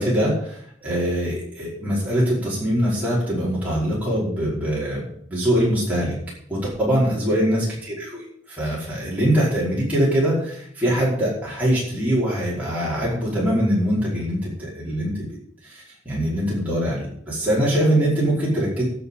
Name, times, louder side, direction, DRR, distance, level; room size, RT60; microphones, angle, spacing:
voice 1, 0.0-6.2 6.5-15.3 15.6-18.8, equal, 5° right, -8 dB, 5.1 m, -23 dB
11.0 x 6.8 x 9.0 m, 0.65 s
head